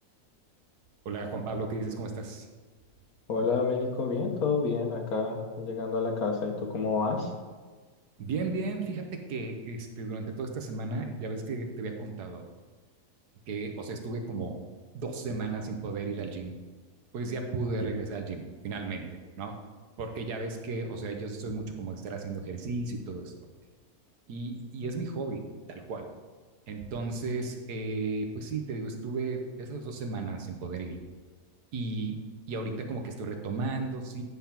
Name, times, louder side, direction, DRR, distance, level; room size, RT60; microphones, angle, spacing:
voice 1, 1.0-2.5 8.2-12.4 13.5-14.6 14.9-16.5 17.1-19.1 19.4-19.6 20.0-23.3 24.3-26.1 26.7-31.0 31.7-32.2 32.5-34.2, right 3 dB, 90° right, 4 dB, 1.5 m, -34 dB
voice 2, 3.3-7.3, left 4 dB, 70° left, 2 dB, 1.5 m, -29 dB
9.6 x 3.6 x 5.8 m, 1.4 s
omnidirectional pair, 1.6 m